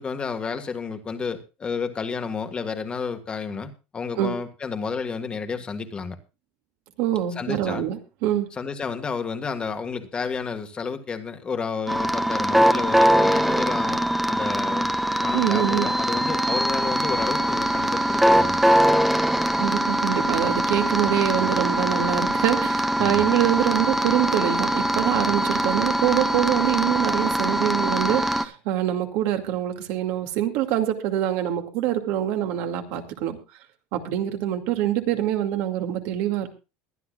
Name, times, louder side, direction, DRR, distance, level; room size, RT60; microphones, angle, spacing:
voice 1, 0.0-6.2 7.4-7.8 8.5-14.9 15.2-18.6 23.0-23.2, left 5 dB, 20° left, 7 dB, 1.6 m, -31 dB
voice 2, 7.0-8.5 15.3-15.9 19.6-33.4 33.9-36.5, right 12 dB, 65° right, 5 dB, 2.4 m, -25 dB
sound 1, 11.9-28.4, equal, 5° right, 0.8 m, -22 dB
22.5 x 11.5 x 2.4 m, 0.30 s
cardioid pair, 155°, 5 cm